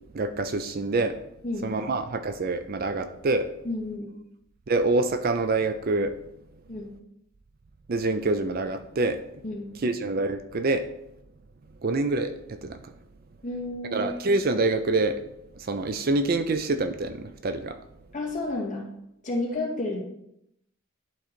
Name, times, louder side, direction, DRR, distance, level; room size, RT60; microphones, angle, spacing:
voice 1, 0.1-1.2 1.6-3.5 4.7-6.1 7.9-9.2 9.8-10.8 11.8-12.8 13.9-15.3 15.6-17.8, right 2 dB, 40° right, 9 dB, 0.4 m, -26 dB
voice 2, 3.6-4.1 6.7-6.9 9.4-9.7 13.4-14.0 18.1-18.9 19.2-20.0, left 2 dB, 35° left, -3 dB, 2.1 m, -31 dB
11.0 x 3.8 x 4.4 m, 0.79 s
head